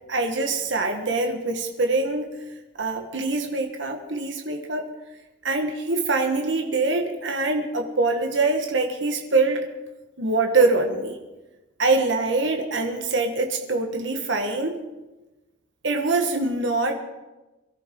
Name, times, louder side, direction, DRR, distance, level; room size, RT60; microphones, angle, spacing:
voice 1, 0.1-2.3 2.8-4.9 5.4-9.7 10.2-11.2 11.8-14.8 15.8-17.0, right 3 dB, 65° right, 3 dB, 1.5 m, -24 dB
23.0 x 13.5 x 3.8 m, 1.1 s
head